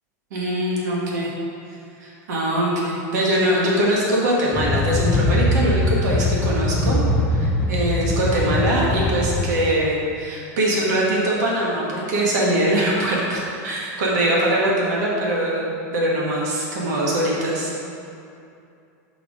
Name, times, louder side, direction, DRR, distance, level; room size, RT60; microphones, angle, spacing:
voice 1, 0.3-1.3 2.0-7.0 7.3-17.8, right 1 dB, 85° right, -4 dB, 1.5 m, -22 dB
sound 1, 4.5-9.6, left 2 dB, 10° left, 0.3 m, -21 dB
5.9 x 4.1 x 4.9 m, 2.6 s
supercardioid pair, 165°, 9 cm